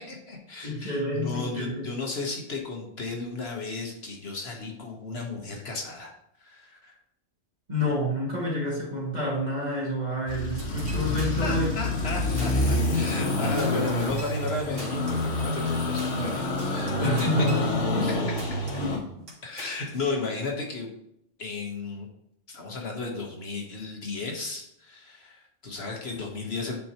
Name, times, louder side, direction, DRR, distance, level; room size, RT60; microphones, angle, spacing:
voice 1, 0.0-6.1 6.4-7.0 11.4-17.3 19.4-20.9 21.4-22.1 22.5-26.8, left 3 dB, 60° left, 1 dB, 1.3 m, -34 dB
voice 2, 0.6-1.9 7.7-11.9 16.8-18.3 18.8-19.2, left 1 dB, 35° right, -4 dB, 2.1 m, -29 dB
sound 1, 10.3-19.0, left 2 dB, 80° left, 1.5 m, -27 dB
sound 2, 10.6-11.8 12.1-12.2 12.4-13.3 13.6-18.1 18.4-19.0 19.3-20.1, right 1 dB, 85° right, 2.1 m, -45 dB
9.1 x 4.5 x 2.9 m, 0.76 s
omnidirectional pair, 1.2 m